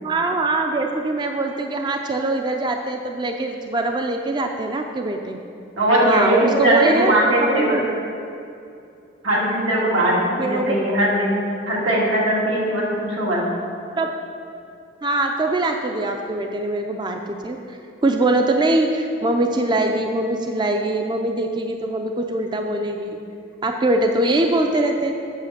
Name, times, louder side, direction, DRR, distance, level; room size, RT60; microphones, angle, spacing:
voice 1, 0.0-5.4 6.1-7.8 10.4-10.9 14.0-14.1 15.0-23.2 23.6-25.2, right 2 dB, 25° right, 4 dB, 0.4 m, -22 dB
voice 2, 5.8-7.8 9.2-11.3 11.7-13.4, right 1 dB, 90° right, -5 dB, 2.4 m, -19 dB
8.2 x 6.4 x 6.5 m, 2.6 s
head